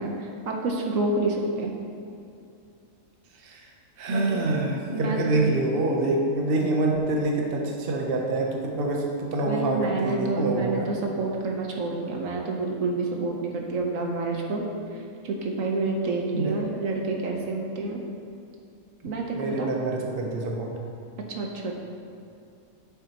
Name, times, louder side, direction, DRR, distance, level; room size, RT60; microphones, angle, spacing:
voice 1, 0.0-1.7 4.1-4.5 4.9-5.5 9.5-14.6 14.9-18.0 19.0-19.7 21.3-21.7, right 3 dB, 80° right, 0 dB, 1.3 m, -28 dB
voice 2, 4.0-10.9 16.3-16.5 19.3-20.7, right 2 dB, 50° right, 0 dB, 1.0 m, -26 dB
9.5 x 7.2 x 3.0 m, 2.6 s
omnidirectional pair, 1.4 m